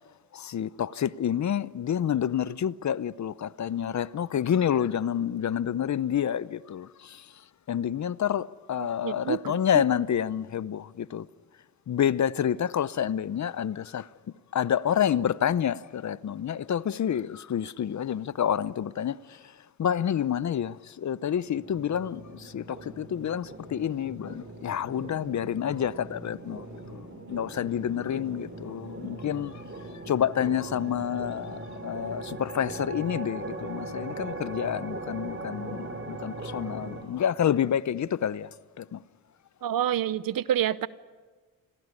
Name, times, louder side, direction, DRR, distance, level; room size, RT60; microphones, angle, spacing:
voice 1, 0.3-7.3 7.7-11.3 11.9-14.1 14.5-19.5 19.8-38.5 38.8-39.0, left 9 dB, 50° left, 0.7 m, -28 dB
voice 2, 8.8-9.6 39.6-40.9, right 10 dB, 65° right, 0.9 m, -28 dB
sound 1, 21.5-37.0, right 2 dB, 35° right, 4.9 m, -40 dB
26.0 x 17.0 x 9.7 m
cardioid pair, 80°, 37 cm